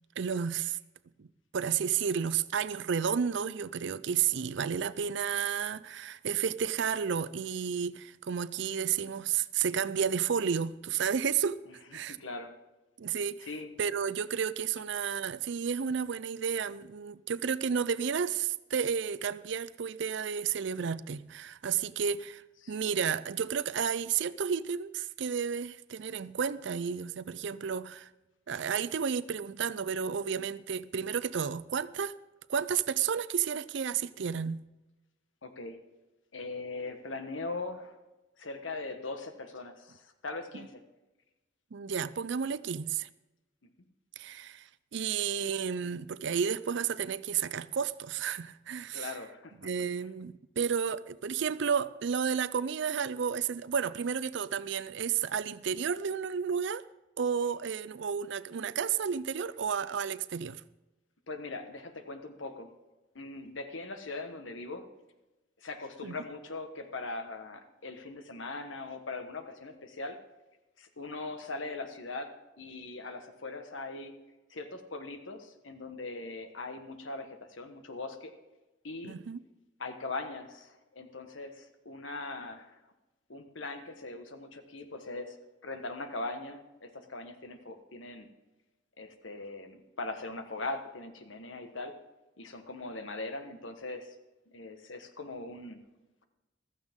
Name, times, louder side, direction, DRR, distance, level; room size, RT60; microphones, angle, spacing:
voice 1, 0.2-0.8 1.2-1.3 1.5-11.6 11.9-12.2 13.0-13.5 13.8-28.1 28.5-32.2 32.5-34.7 41.7-43.1 44.2-49.1 49.6-56.8 57.2-60.6 66.0-66.1 79.0-79.4, right 7 dB, 65° right, 0.5 m, -32 dB
voice 2, 11.9-12.5 13.4-13.7 22.6-22.8 35.4-35.8 36.3-38.0 38.4-40.8 48.9-49.7 61.3-62.7 63.1-64.9 65.6-70.2 70.8-74.1 74.5-78.3 78.8-79.2 79.8-82.8 83.3-85.4 85.6-88.3 89.0-91.9 92.4-94.1 94.5-95.8, left 3 dB, 85° left, 1.4 m, -40 dB
15.0 x 14.0 x 3.7 m
head